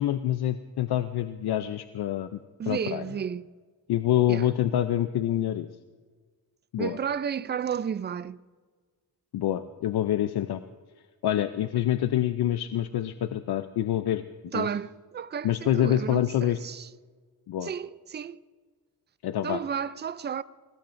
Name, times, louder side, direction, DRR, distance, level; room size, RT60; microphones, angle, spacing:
voice 1, 0.0-2.4 2.7-3.0 3.9-5.7 6.7-7.0 9.3-10.6 11.2-14.2 14.5-14.7 15.4-16.6 17.5-17.7 19.2-19.6, left 12 dB, 85° left, 0.6 m, -26 dB
voice 2, 2.6-3.5 4.3-4.5 6.8-8.4 14.5-16.9 17.6-18.4 19.4-20.4, right 8 dB, 30° right, 0.4 m, -32 dB
24.5 x 19.0 x 2.6 m
wide cardioid pair, 120°, 38 cm